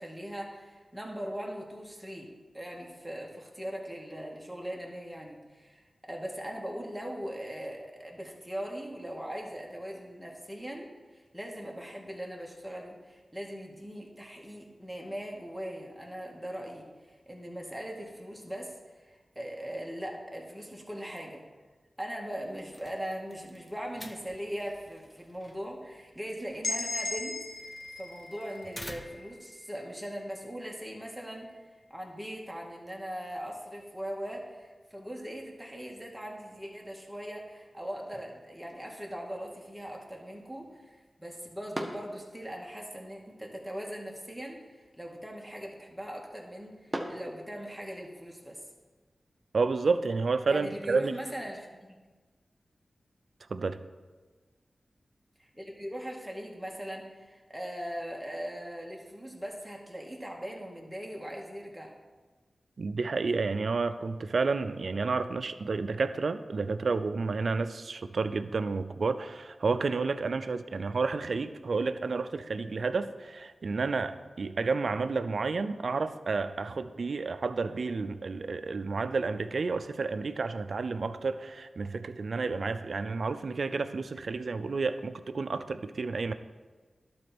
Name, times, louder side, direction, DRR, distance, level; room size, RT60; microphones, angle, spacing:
voice 1, 0.0-21.4 22.0-27.4 28.0-31.5 31.9-48.6 50.5-52.0 55.4-61.9, equal, 5° right, -1 dB, 2.1 m, -40 dB
sound 1, 22.5-29.4, left 1 dB, 20° left, 0.8 m, -51 dB
sound 2, 26.6-30.5, left 2 dB, 60° left, 1.3 m, -38 dB
Impact Book, 38.0-48.0, right 1 dB, 20° right, 1.3 m, -46 dB
voice 2, 49.5-51.1 53.5-53.8 62.8-86.3, right 4 dB, 75° right, 11 dB, 0.5 m, -30 dB
11.5 x 4.3 x 6.1 m, 1.3 s
cardioid pair, 45°, 0 cm